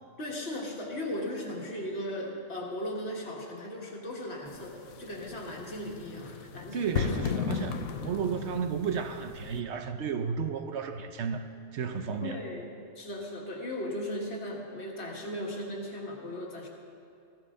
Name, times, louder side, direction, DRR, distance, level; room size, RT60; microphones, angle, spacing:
voice 1, 0.2-7.2 12.2-12.7 13.0-16.7, left 1 dB, 50° left, 1.9 m, -37 dB
sound 1, 4.5-9.6, left 7 dB, 85° left, 1.2 m, -35 dB
voice 2, 6.7-11.5 11.7-12.4, right 6 dB, 60° right, 0.8 m, -33 dB
15.0 x 14.5 x 3.8 m
omnidirectional pair, 1.4 m